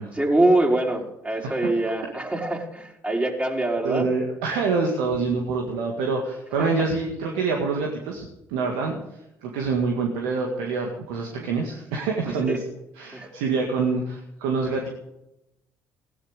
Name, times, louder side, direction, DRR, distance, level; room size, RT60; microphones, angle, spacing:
voice 1, 0.1-4.1 13.1-13.3, right 1 dB, 20° right, -1 dB, 4.6 m, -23 dB
voice 2, 3.8-9.0 9.4-12.6 12.9-14.9, right 4 dB, 80° right, 0 dB, 2.0 m, -26 dB
17.0 x 11.0 x 6.8 m, 0.87 s
hypercardioid pair, 55°, 7 cm